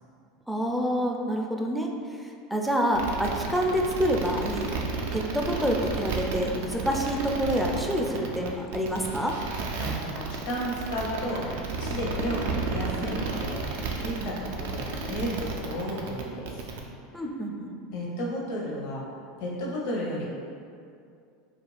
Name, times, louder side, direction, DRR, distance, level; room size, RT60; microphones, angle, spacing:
voice 1, 0.5-1.9 2.2-4.7 5.1-9.4 14.2-14.4 17.1-17.8, equal, ahead, 0 dB, 0.4 m, -27 dB
sound 1, 2.9-16.8, right 4 dB, 75° right, 0.3 m, -32 dB
voice 2, 9.7-16.6 17.1-17.2 17.9-20.3, equal, 65° left, -4 dB, 0.7 m, -33 dB
2.4 x 2.3 x 3.2 m, 2.4 s
hypercardioid pair, 90°, 0 cm